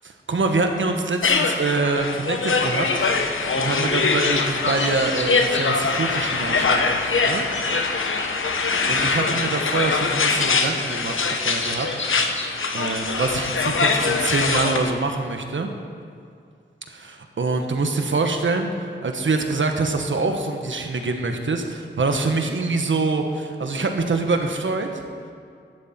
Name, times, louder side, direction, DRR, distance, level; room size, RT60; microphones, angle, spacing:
voice 1, 0.0-2.9 3.5-7.5 8.9-11.9 12.7-15.7 16.9-25.0, right 3 dB, 70° right, 4 dB, 1.4 m, -25 dB
sound 1, 1.2-14.9, left 4 dB, 85° left, 1.0 m, -23 dB
sound 2, 4.1-6.7 7.1-8.9 9.9-10.0 10.6-13.5, left 2 dB, 70° left, 1.7 m, -35 dB
16.0 x 11.5 x 4.4 m, 2.3 s
wide cardioid pair, 75°, 20 cm